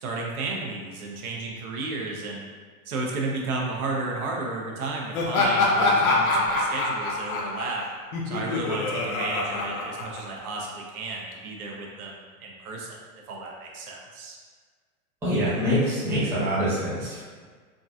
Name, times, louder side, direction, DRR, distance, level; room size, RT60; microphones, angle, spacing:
voice 1, 0.0-2.5 2.9-7.8 8.2-13.0 13.3-14.4, right 3 dB, 75° right, -1 dB, 0.8 m, -33 dB
Laughter, 5.1-10.6, left 2 dB, 70° left, 0.8 m, -25 dB
voice 2, 15.2-17.2, equal, 5° right, -11 dB, 0.6 m, -25 dB
3.7 x 2.7 x 2.3 m, 1.5 s
hypercardioid pair, 145°, 44 cm